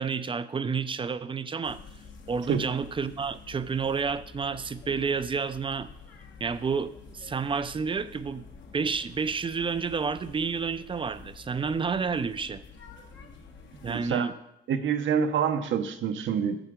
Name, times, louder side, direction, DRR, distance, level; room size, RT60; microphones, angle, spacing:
voice 1, 0.0-1.8 2.3-5.9 6.4-8.5 8.7-12.6 13.8-14.3, right 5 dB, 25° right, 14 dB, 0.4 m, -30 dB
sound 1, 1.6-14.1, left 5 dB, 70° left, 1.3 m, -49 dB
voice 2, 13.8-14.3 14.7-16.6, right 7 dB, 75° right, 8 dB, 0.8 m, -26 dB
9.8 x 6.8 x 3.7 m, 0.80 s
cardioid pair, 90°, 20 cm